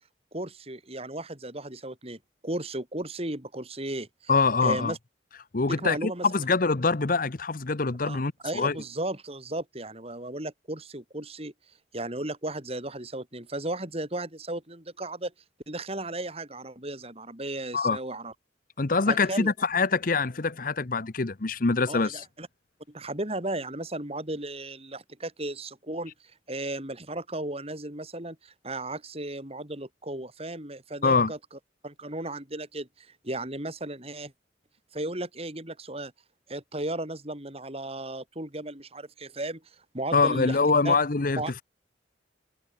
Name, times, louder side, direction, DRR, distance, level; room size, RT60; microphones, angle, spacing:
voice 1, 0.3-4.3 4.6-5.0 5.8-6.3 8.0-11.5 11.9-15.3 15.7-18.3 19.1-19.5 21.9-22.5 22.9-31.4 31.8-34.3 34.9-36.1 36.5-39.6 39.9-40.6 40.8-41.0 41.4-41.6, right 1 dB, 35° right, 4.2 m, -35 dB
voice 2, 4.3-4.9 5.5-8.8 17.7-18.0 18.8-22.2 31.0-31.3 40.1-41.6, left 4 dB, 50° left, 0.9 m, -24 dB
head